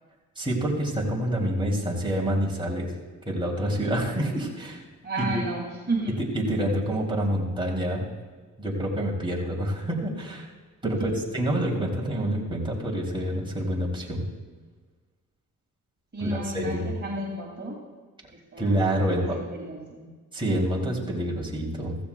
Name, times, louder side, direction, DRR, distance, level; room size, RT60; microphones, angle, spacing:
voice 1, 0.4-2.9 3.3-4.8 5.2-5.4 6.2-8.1 8.6-10.5 10.8-14.2 16.2-16.9 18.6-19.4 20.3-22.0, right 1 dB, 15° right, -3 dB, 3.0 m, -27 dB
voice 2, 5.0-6.1 10.8-11.1 16.1-17.8 18.3-20.1, right 2 dB, 30° right, -3 dB, 2.5 m, -32 dB
15.5 x 15.0 x 2.3 m, 1.4 s
cardioid pair, 85°, 33 cm